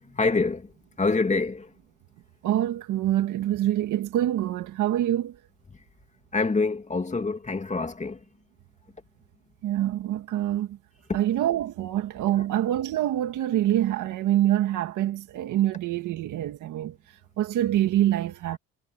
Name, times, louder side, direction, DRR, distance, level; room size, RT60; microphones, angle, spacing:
voice 1, 0.1-0.7 1.0-1.7 6.3-8.2 11.1-11.2, left 3 dB, 25° left, 2.4 m, -26 dB
voice 2, 2.4-5.3 9.6-10.8 11.1-16.9 17.4-18.6, right 12 dB, 85° right, 1.9 m, -25 dB
cardioid pair, 90°, 30 cm